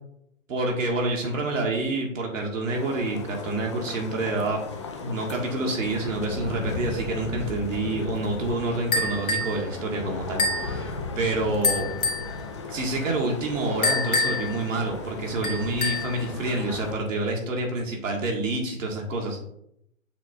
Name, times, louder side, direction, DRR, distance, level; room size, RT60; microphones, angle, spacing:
voice 1, 0.5-4.6 5.0-10.9 11.2-11.9 12.7-19.4, right 2 dB, 65° right, 0 dB, 1.9 m, -28 dB
sound 1, 2.7-16.9, left 3 dB, 25° left, 0.4 m, -36 dB
sound 2, 8.9-9.6 10.4-10.7 11.6-12.3 13.8-14.5 15.4-16.1, left 3 dB, 80° left, 1.4 m, -25 dB
6.9 x 3.4 x 4.1 m, 0.74 s
hypercardioid pair, 145°, 41 cm